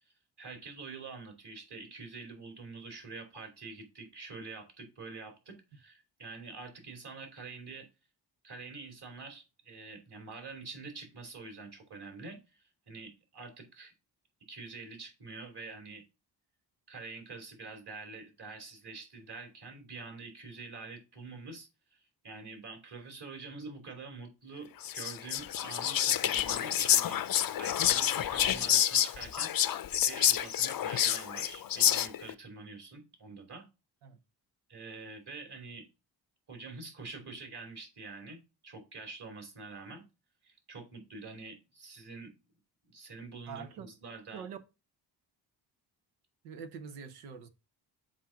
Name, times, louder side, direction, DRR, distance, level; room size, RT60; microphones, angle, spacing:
voice 1, 0.4-7.9 8.4-13.9 14.5-16.0 16.9-29.5 30.0-33.7 34.7-35.9 36.5-40.0 40.4-42.3 42.8-44.4, right 3 dB, 55° right, 2.9 m, -46 dB
Whispering, 24.8-32.3, left 10 dB, 45° left, 0.6 m, -28 dB
voice 2, 43.5-43.9 44.3-44.6 46.4-47.5, right 6 dB, 90° right, 0.8 m, -44 dB
7.3 x 2.5 x 5.7 m
supercardioid pair, 45°, 49 cm